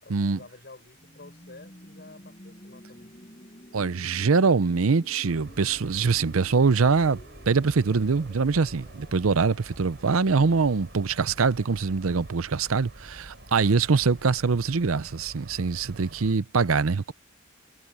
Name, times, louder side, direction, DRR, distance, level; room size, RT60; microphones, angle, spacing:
voice 1, 0.0-3.1, left 3 dB, 50° left, 6.0 m, -50 dB
sound 1, 0.9-12.7, equal, 30° left, 7.8 m, -51 dB
voice 2, 3.7-7.2 7.5-17.1, right 4 dB, 85° right, 0.7 m, -23 dB
sound 2, 5.2-16.4, right 1 dB, 55° right, 7.0 m, -47 dB
head